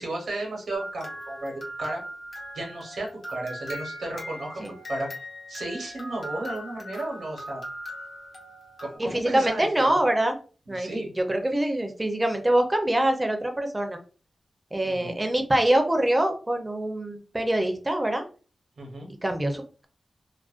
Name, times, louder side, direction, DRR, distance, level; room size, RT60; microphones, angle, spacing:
voice 1, 0.0-2.0 2.5-5.1 5.5-7.6 8.8-10.0 10.7-11.1 14.8-15.1 18.8-19.1, right 1 dB, 85° right, 0 dB, 0.8 m, -34 dB
sound 1, 0.7-9.0, equal, 65° left, 0.9 m, -39 dB
voice 2, 9.0-10.4 10.7-10.9 11.2-14.0 14.7-18.2 19.2-19.9, right 1 dB, 20° right, 5 dB, 0.5 m, -24 dB
2.4 x 2.1 x 2.4 m, 0.38 s
wide cardioid pair, 85°, 0 cm